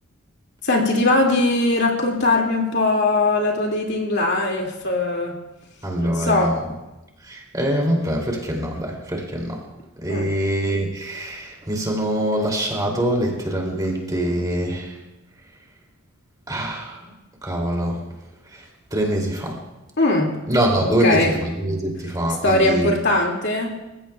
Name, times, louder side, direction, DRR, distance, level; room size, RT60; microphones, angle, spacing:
voice 1, 0.6-5.4 6.0-6.6 10.1-10.3 20.0-20.3 20.9-21.4 22.4-23.8, left 2 dB, 50° left, 0 dB, 2.2 m, -20 dB
voice 2, 5.8-6.6 7.2-9.7 10.0-15.0 16.5-17.1 17.4-18.0 18.4-19.6 20.5-22.9, right 1 dB, 15° right, 0 dB, 2.7 m, -24 dB
27.5 x 15.5 x 2.3 m, 1.0 s
head